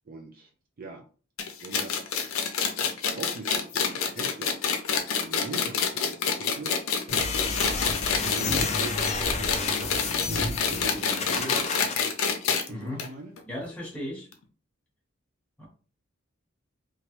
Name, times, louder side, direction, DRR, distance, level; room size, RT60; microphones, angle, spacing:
voice 1, 0.1-0.5 0.8-1.1 1.6-2.3 3.1-4.7 5.2-6.8 7.1-7.8 8.2-11.8 12.6-13.3, right 3 dB, 45° right, 3 dB, 0.4 m, -41 dB
sound 1, 1.4-12.7 13.0-13.1 13.4-13.5 14.3-14.4, left 6 dB, 90° left, 0.5 m, -27 dB
sound 2, 7.1-12.0, left 4 dB, 30° left, 0.4 m, -30 dB
voice 2, 12.7-13.0 13.5-14.3 15.6-15.7, equal, 5° left, -3 dB, 1.1 m, -36 dB
3.0 x 2.3 x 3.0 m, 0.38 s
head